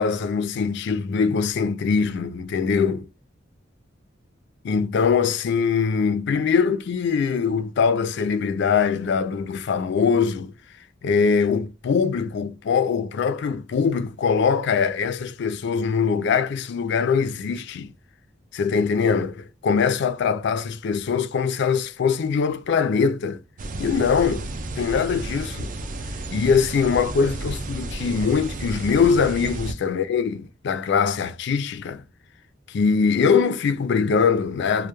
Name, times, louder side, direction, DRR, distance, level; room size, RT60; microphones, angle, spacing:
voice 1, 0.0-3.1 4.6-10.5 11.0-17.9 18.5-23.4 23.8-24.5 24.8-25.7 26.3-32.0 32.7-34.9, left 6 dB, 60° left, 0.4 m, -22 dB
sound 1, 23.6-29.7, right 2 dB, 45° right, 0.4 m, -32 dB
2.2 x 2.1 x 2.8 m
head